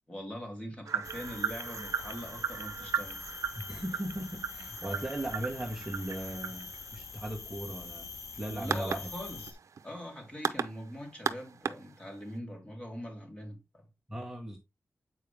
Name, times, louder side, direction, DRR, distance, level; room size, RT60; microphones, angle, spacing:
voice 1, 0.1-3.2 8.5-9.6 9.8-13.9, equal, 20° left, 3.1 m, -42 dB
sound 1, 0.9-12.3, right 6 dB, 85° right, 0.6 m, -37 dB
sound 2, 1.0-9.5, left 4 dB, 75° left, 1.4 m, -45 dB
voice 2, 3.5-9.1 14.1-14.6, right 1 dB, 10° right, 1.4 m, -38 dB
8.5 x 4.8 x 3.5 m
wide cardioid pair, 130°, 5 cm